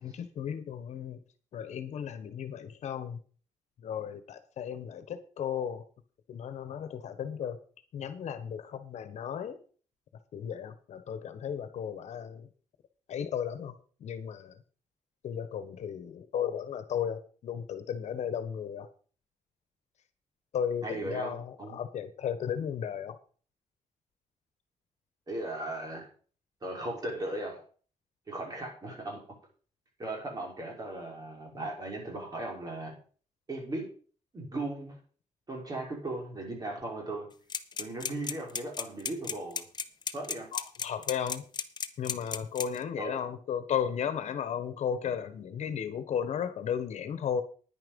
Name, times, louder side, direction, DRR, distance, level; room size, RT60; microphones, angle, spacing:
voice 1, 0.0-1.2 1.5-3.2 3.8-5.8 6.3-7.6 7.9-9.6 10.3-12.5 13.1-13.7 14.0-14.6 15.2-18.9 20.5-23.2 40.5-41.4 42.0-47.4, left 8 dB, 65° left, 11 dB, 1.4 m, -35 dB
voice 2, 20.8-21.3 21.6-21.8 25.3-26.1 26.6-27.7 28.3-29.2 30.0-33.0 33.5-33.9 34.3-35.0 35.5-37.3 37.8-39.7 40.1-40.5 43.0-43.2, right 2 dB, 30° right, -1 dB, 5.8 m, -37 dB
sound 1, 37.5-42.8, left 6 dB, 35° left, 1.0 m, -34 dB
10.5 x 10.0 x 5.4 m, 0.42 s
cardioid pair, 125°, 12 cm